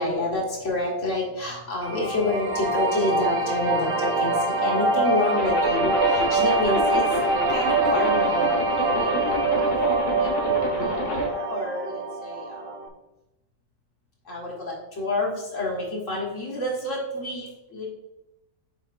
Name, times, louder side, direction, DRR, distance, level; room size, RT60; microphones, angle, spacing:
voice 1, 0.0-7.0 7.5-9.1 9.5-9.8 10.2-12.7 14.3-17.9, left 2 dB, 45° left, -3 dB, 1.9 m, -28 dB
sound 1, 1.8-12.9, right 3 dB, 70° right, 0.5 m, -24 dB
Zipper (clothing), 5.3-11.3, left 3 dB, 60° left, 1.9 m, -30 dB
7.1 x 5.4 x 2.6 m, 0.96 s
omnidirectional pair, 1.9 m